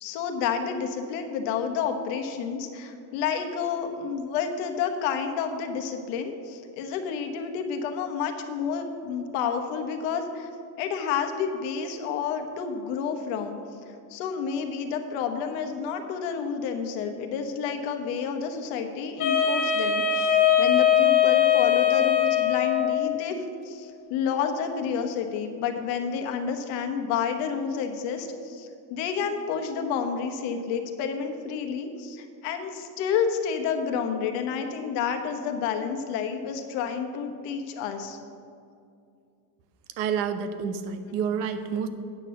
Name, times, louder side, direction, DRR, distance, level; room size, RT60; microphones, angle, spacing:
voice 1, 0.0-10.5 10.8-13.6 14.1-38.2, left 6 dB, 55° left, 5 dB, 1.1 m, -30 dB
Wind instrument woodwind instrument, 19.2-23.1, left 9 dB, 40° left, 1.9 m, -21 dB
voice 2, 40.0-41.9, right 7 dB, 75° right, 9 dB, 1.0 m, -29 dB
9.0 x 6.1 x 7.5 m, 2.4 s
cardioid pair, 170°, 49 cm